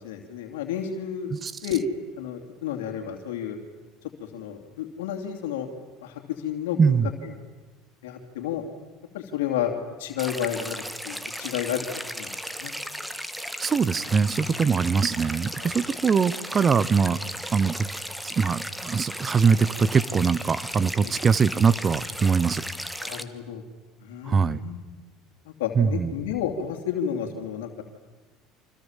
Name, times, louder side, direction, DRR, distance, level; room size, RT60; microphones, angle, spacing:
voice 1, 0.0-1.3 1.6-1.8 2.2-3.6 4.3-5.7 6.0-7.0 7.2-7.3 8.0-8.6 9.1-9.7 10.0-11.9 12.2-12.7 14.4-14.5 15.6-15.7 21.0-21.1 23.0-23.6 24.0-24.8 25.5-27.8, left 9 dB, 90° left, 3 dB, 2.8 m, -31 dB
voice 2, 6.8-7.1 13.6-17.2 17.5-17.9 18.2-22.6 24.3-24.6 25.8-26.1, right 5 dB, 30° right, 19 dB, 1.0 m, -22 dB
sound 1, 10.2-23.2, equal, ahead, 1.6 m, -35 dB
29.0 x 25.5 x 7.5 m, 1.3 s
supercardioid pair, 100°, 0 cm